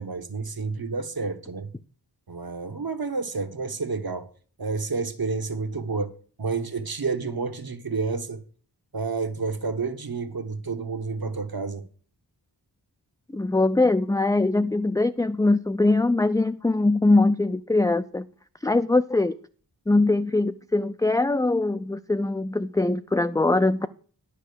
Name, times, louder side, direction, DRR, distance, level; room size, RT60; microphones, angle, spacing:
voice 1, 0.0-1.7 2.3-4.3 4.6-6.1 6.4-8.4 8.9-11.8, right 4 dB, 60° right, 1.2 m, -30 dB
voice 2, 13.3-18.3 18.6-19.4 19.9-23.9, left 2 dB, 10° left, 0.4 m, -22 dB
10.0 x 5.6 x 6.8 m
wide cardioid pair, 70°, 41 cm